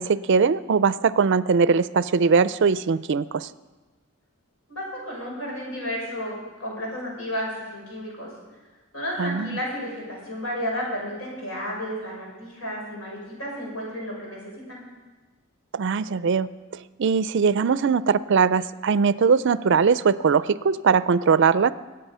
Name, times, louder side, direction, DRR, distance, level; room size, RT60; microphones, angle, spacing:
voice 1, 0.0-3.5 9.2-9.6 15.7-16.5 17.0-21.7, right 5 dB, 55° right, 16 dB, 0.4 m, -20 dB
voice 2, 4.7-8.3 8.9-14.8, equal, 75° left, -3 dB, 6.5 m, -32 dB
22.5 x 8.8 x 5.6 m, 1.3 s
head